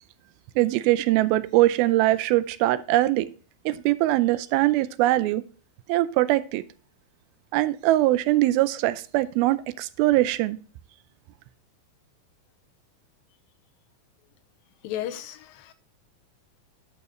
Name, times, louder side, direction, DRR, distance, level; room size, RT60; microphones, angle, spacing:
voice 1, 0.6-3.3 3.7-5.4 5.9-6.6 7.5-10.6, right 16 dB, 85° right, 2.4 m, -22 dB
voice 2, 14.8-15.7, left 11 dB, 80° left, 2.3 m, -34 dB
11.0 x 6.9 x 3.1 m
omnidirectional pair, 4.3 m